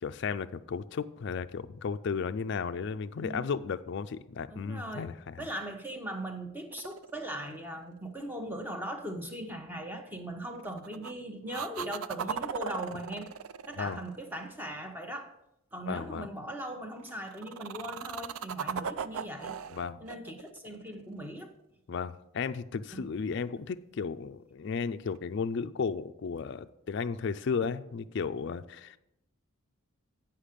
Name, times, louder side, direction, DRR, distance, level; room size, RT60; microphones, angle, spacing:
voice 1, 0.0-5.5 13.8-14.0 15.9-16.3 19.7-20.0 21.9-29.0, left 5 dB, 55° left, 11 dB, 0.3 m, -34 dB
voice 2, 3.2-3.5 4.5-5.1 5.4-13.3 13.7-15.3 15.7-19.6 20.0-21.5 22.9-23.1, right 1 dB, 10° right, 4 dB, 0.9 m, -39 dB
sound 1, 6.7-7.9 10.6-11.1 11.5-14.8 17.0-21.4 25.1-25.2, right 7 dB, 75° right, 0.4 m, -38 dB
10.0 x 5.7 x 5.1 m, 0.85 s
head